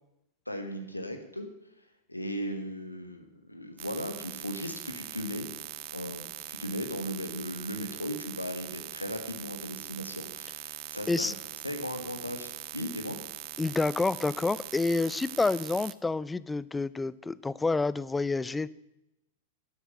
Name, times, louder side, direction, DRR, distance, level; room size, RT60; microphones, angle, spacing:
voice 1, 0.5-1.5 2.1-5.5 5.9-11.3 11.6-13.2, equal, 90° left, 6 dB, 1.4 m, -37 dB
sound 1, 3.8-15.9, right 18 dB, 45° right, 0.5 m, -42 dB
voice 2, 13.6-18.7, left 3 dB, 10° left, 19 dB, 0.4 m, -28 dB
10.5 x 8.1 x 7.9 m, 0.88 s
figure-of-eight pair, 95°, 0 cm